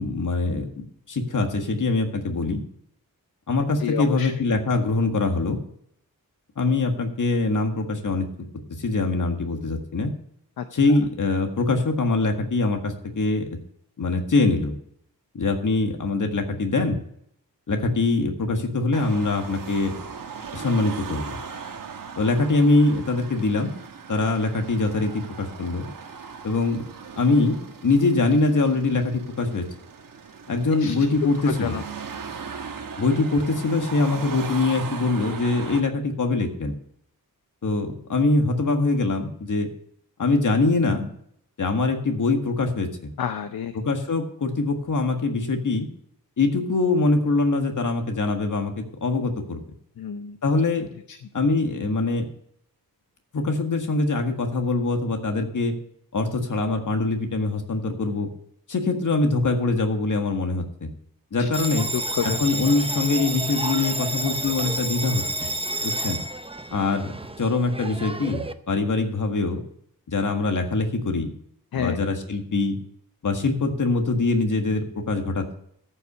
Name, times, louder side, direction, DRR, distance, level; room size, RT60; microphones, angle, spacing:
voice 1, 0.0-2.6 3.5-5.6 6.6-8.3 8.7-10.1 10.7-13.5 14.0-14.8 15.3-17.0 17.7-19.9 20.5-21.4 22.2-23.7 24.1-25.9 26.4-26.8 27.2-27.6 27.8-29.6 30.5-31.8 33.0-36.7 37.6-39.7 40.2-41.1 41.6-43.1 43.7-45.9 46.4-49.6 50.4-50.9 51.3-52.3 53.3-55.7 56.1-58.3 58.7-60.9 61.3-61.9 62.4-65.2 65.8-66.2 66.7-69.6 70.1-71.3 71.7-72.8 73.2-75.5, left 3 dB, 60° left, 4 dB, 1.8 m, -23 dB
voice 2, 3.8-4.3 10.6-11.0 30.8-30.9 31.5-31.8 43.2-43.7 50.0-50.4 51.1-51.2 61.4-61.5 61.9-62.4 71.7-72.0, left 8 dB, 75° left, 9 dB, 0.7 m, -29 dB
Car passing by / Traffic noise roadway noise / Engine, 18.9-35.8, right 6 dB, 65° right, 1.2 m, -38 dB
Bell, 61.5-68.5, right 2 dB, 15° right, 0.6 m, -30 dB
13.5 x 5.8 x 6.7 m, 0.70 s
wide cardioid pair, 105°, 36 cm